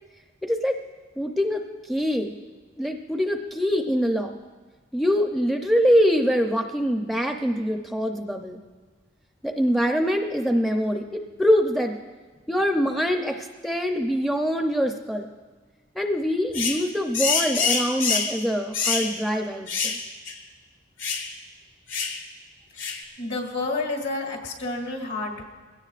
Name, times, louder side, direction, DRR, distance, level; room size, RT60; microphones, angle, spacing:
voice 1, 0.4-0.8 1.2-2.3 2.8-4.3 4.9-8.6 9.4-12.0 12.5-15.3 16.0-20.0, equal, ahead, 3 dB, 0.5 m, -24 dB
sound 1, 16.5-16.8 17.1-18.4 18.7-19.1 19.7-20.0 20.3-20.4 21.0-21.3 21.9-22.2 22.8-23.0, left 5 dB, 90° left, 1.8 m, -25 dB
voice 2, 23.2-25.4, left 3 dB, 65° left, 1 dB, 2.4 m, -29 dB
21.5 x 16.5 x 2.5 m, 1.3 s
head